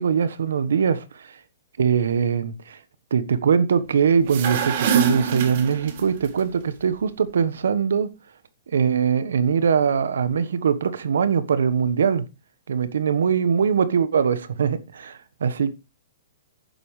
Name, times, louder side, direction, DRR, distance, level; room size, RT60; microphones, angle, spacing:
voice 1, 0.0-1.4 1.8-2.8 3.1-8.1 8.7-12.3 12.7-15.8, right 7 dB, 75° right, 1.3 m, -22 dB
sound 1, 4.1-6.3, right 6 dB, 55° right, 2.7 m, -24 dB
11.5 x 10.5 x 3.3 m
hypercardioid pair, 120°, 0 cm